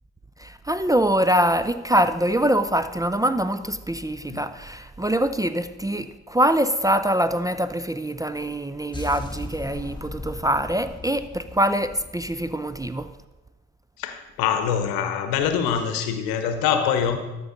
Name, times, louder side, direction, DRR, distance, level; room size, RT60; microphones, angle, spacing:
voice 1, 0.4-13.1, right 1 dB, 10° right, 0.4 m, -24 dB
sound 1, 8.9-13.0, left 2 dB, 10° left, 1.3 m, -38 dB
voice 2, 14.0-17.2, left 8 dB, 80° left, 0.9 m, -24 dB
13.0 x 5.3 x 3.9 m
hypercardioid pair, 40°, 37 cm